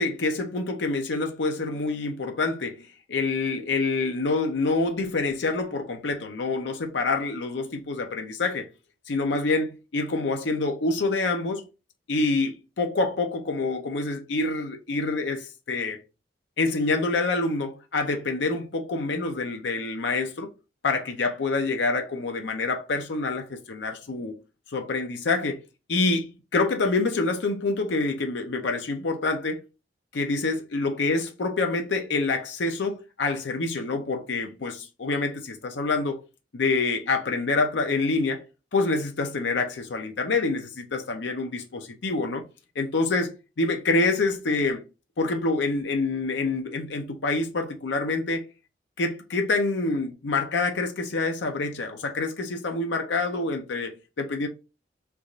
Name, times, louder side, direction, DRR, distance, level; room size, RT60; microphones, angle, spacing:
voice 1, 0.0-8.7 9.1-11.6 12.1-16.0 16.6-20.5 20.8-24.3 24.7-25.6 25.9-29.6 30.1-36.2 36.5-38.4 38.7-42.4 42.8-44.8 45.2-48.4 49.0-54.5, left 3 dB, 85° left, 0.6 m, -26 dB
3.4 x 2.4 x 3.9 m
head